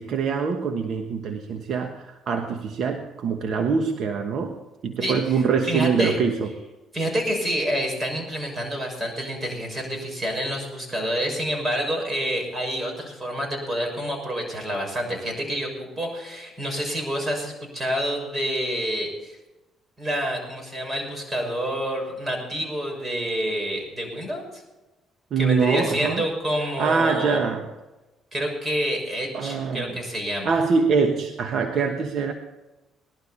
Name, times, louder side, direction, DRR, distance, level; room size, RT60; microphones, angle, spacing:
voice 1, 0.0-4.5 4.8-6.5 25.3-26.2 26.8-27.7 29.3-29.9 30.4-32.3, right 5 dB, 60° right, 5 dB, 1.2 m, -24 dB
voice 2, 5.0-6.2 6.9-19.4 20.0-24.6 25.4-27.4 28.3-30.6, equal, 25° right, 1 dB, 6.2 m, -28 dB
19.5 x 12.0 x 4.3 m, 1.1 s
cardioid pair, 85°, 0 cm